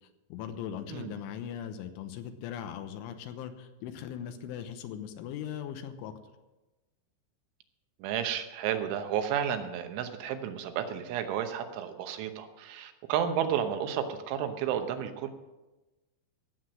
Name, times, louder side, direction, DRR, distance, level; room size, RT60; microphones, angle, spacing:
voice 1, 0.0-6.1, left 9 dB, 90° left, 8 dB, 3.5 m, -39 dB
voice 2, 8.0-15.3, right 9 dB, 90° right, 7 dB, 3.5 m, -32 dB
16.5 x 7.8 x 6.4 m, 1.1 s
omnidirectional pair, 5.4 m